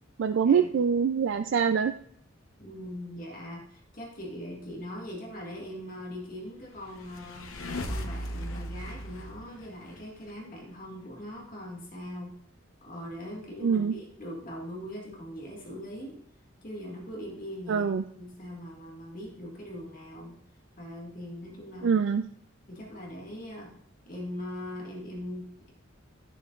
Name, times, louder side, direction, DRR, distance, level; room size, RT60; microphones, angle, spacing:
voice 1, 0.2-1.9 13.6-13.9 17.7-18.0 21.8-22.2, right 6 dB, 65° right, 8 dB, 0.3 m, -24 dB
voice 2, 2.6-7.5 7.9-12.3 12.8-16.2 16.6-17.9 18.2-20.4 20.8-22.0 22.7-23.8 24.0-25.7, equal, 40° left, -2 dB, 1.8 m, -41 dB
sound 1, 6.7-10.3, equal, 85° left, 0.9 m, -37 dB
12.0 x 6.9 x 2.4 m, 0.65 s
head